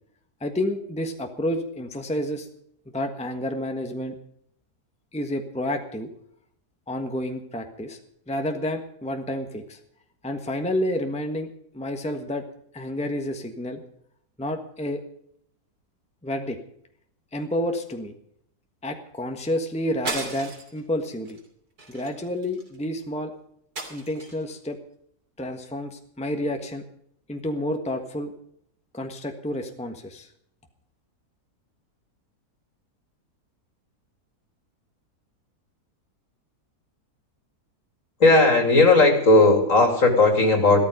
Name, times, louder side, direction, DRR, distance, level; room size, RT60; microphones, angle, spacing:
voice 1, 0.4-2.5 2.9-4.2 5.1-6.1 6.9-8.0 8.3-9.8 10.2-11.5 11.7-12.5 12.7-13.8 14.4-15.0 16.2-16.6 17.3-18.1 18.8-21.4 21.9-23.3 23.9-24.8 25.4-26.8 27.3-28.3 28.9-30.3, left 1 dB, 5° left, 5 dB, 1.3 m, -29 dB
sound 1, 20.1-20.8 21.3-21.5 21.8-22.8 23.8-24.5, right 3 dB, 75° right, 3.4 m, -35 dB
voice 2, 38.2-40.9, left 2 dB, 55° left, 4 dB, 3.0 m, -16 dB
15.0 x 13.0 x 5.2 m, 0.68 s
omnidirectional pair, 1.7 m